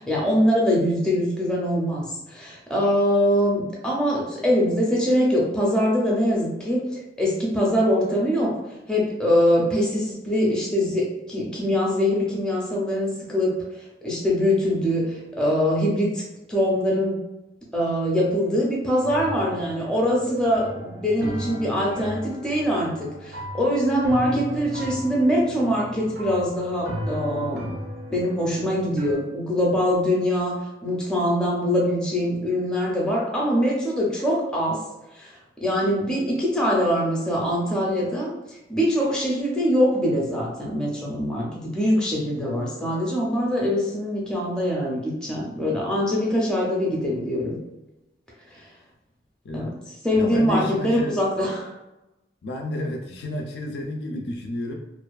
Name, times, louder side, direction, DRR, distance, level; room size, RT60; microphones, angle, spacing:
voice 1, 0.0-8.6 8.9-13.5 14.0-16.2 16.5-17.2 17.7-27.7 28.1-34.8 35.1-47.6 48.5-48.7 49.5-49.7 50.0-51.7, equal, 5° left, -4 dB, 0.5 m, -23 dB
sound 1, 19.0-29.1, equal, 70° right, 0.5 m, -35 dB
voice 2, 50.1-51.2 52.4-54.7, left 1 dB, 65° left, 1 dB, 0.4 m, -31 dB
2.5 x 2.3 x 2.3 m, 0.98 s
head